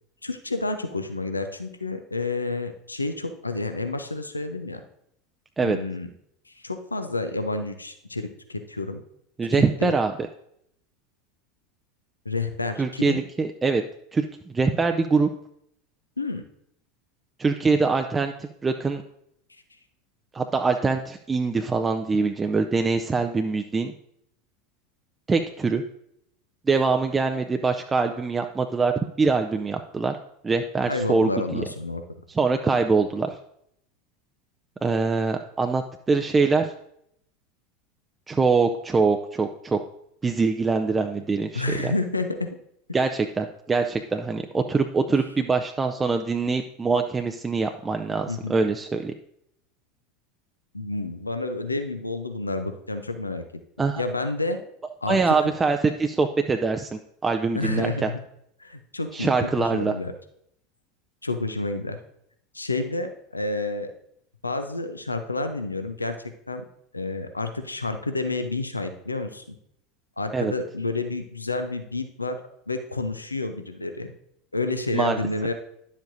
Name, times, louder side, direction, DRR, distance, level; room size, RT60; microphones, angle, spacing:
voice 1, 0.2-4.8 5.6-6.1 6.5-9.0 9.8-9.9 12.2-13.2 16.2-16.4 30.9-32.0 41.5-42.5 48.3-48.6 50.7-53.4 54.0-54.6 55.0-55.2 57.5-58.2 58.6-60.1 61.2-62.0 62.5-63.9 64.4-66.6 66.9-69.6 70.2-72.4 72.7-74.1 74.5-75.5, left 2 dB, 90° left, 8 dB, 0.6 m, -29 dB
voice 2, 9.4-10.1 12.8-13.8 14.1-14.3 14.5-15.3 17.4-19.0 20.3-23.9 25.3-25.8 26.7-30.2 30.4-31.6 32.3-33.4 34.8-36.7 38.3-39.8 40.2-41.9 42.9-49.1 53.8-54.0 55.1-58.1 59.1-59.9 70.3-70.5 74.9-75.2, right 4 dB, 20° right, 5 dB, 0.5 m, -23 dB
10.5 x 7.2 x 2.6 m, 0.73 s
figure-of-eight pair, 80°, 0 cm